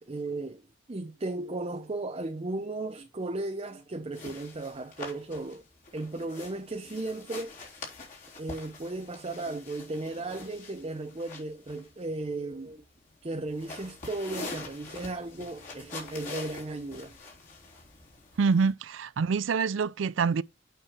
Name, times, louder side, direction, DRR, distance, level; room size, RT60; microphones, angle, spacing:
voice 1, 0.0-0.6 0.9-5.6 5.9-7.6 8.4-12.8 13.2-17.2, right 2 dB, 30° right, 0.7 m, -35 dB
sound 1, 4.1-18.7, left 3 dB, 40° left, 3.9 m, -45 dB
voice 2, 18.4-20.4, right 5 dB, 70° right, 0.4 m, -26 dB
8.8 x 4.7 x 5.9 m
head